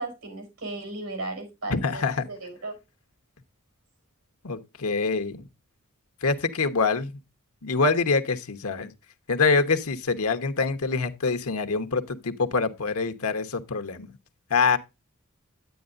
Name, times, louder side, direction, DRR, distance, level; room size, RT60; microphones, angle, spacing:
voice 1, 0.0-2.7, right 2 dB, 80° right, 5.7 m, -36 dB
voice 2, 1.7-2.3 4.4-5.5 6.2-7.2 7.6-8.9 9.3-14.1 14.5-14.8, left 4 dB, 80° left, 1.1 m, -25 dB
9.8 x 9.2 x 2.5 m
head